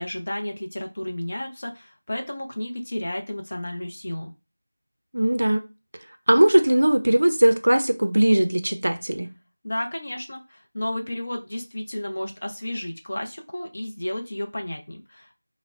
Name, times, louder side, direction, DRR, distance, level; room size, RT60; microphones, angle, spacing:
voice 1, 0.0-4.3 9.6-15.3, left 1 dB, 40° left, 0.5 m, -32 dB
voice 2, 5.1-5.6 6.3-9.3, right 1 dB, 60° right, 0.4 m, -19 dB
3.8 x 2.0 x 2.2 m
figure-of-eight pair, 175°, 0 cm